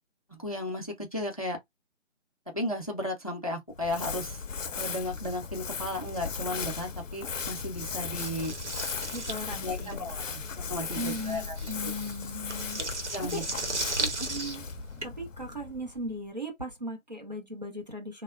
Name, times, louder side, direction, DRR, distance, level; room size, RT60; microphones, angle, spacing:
voice 1, 0.3-1.6 2.5-4.4 4.8-8.5 9.6-10.4 10.7-11.6 11.8-11.9 12.8-12.9 13.1-13.4 14.1-14.3, left 1 dB, 30° left, 0.5 m, -34 dB
Crumpling crinkling, 3.7-16.2, left 5 dB, 80° left, 0.5 m, -37 dB
sound 1, 8.2-15.1, right 2 dB, 65° right, 0.9 m, -36 dB
voice 2, 9.1-10.1 11.0-13.5 14.0-14.6 15.0-18.2, equal, 35° right, 0.6 m, -38 dB
3.1 x 2.1 x 2.3 m
figure-of-eight pair, 160°, 38 cm